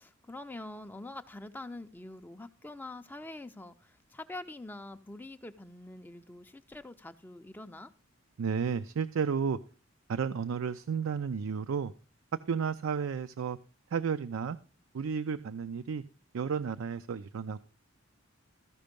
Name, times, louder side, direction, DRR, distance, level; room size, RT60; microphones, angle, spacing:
voice 1, 0.0-7.9, left 2 dB, 10° left, 0.4 m, -45 dB
voice 2, 8.4-9.6 10.1-11.9 12.5-13.6 13.9-14.6 14.9-16.0 16.3-17.6, right 6 dB, 70° right, 0.4 m, -32 dB
14.0 x 5.3 x 5.1 m
head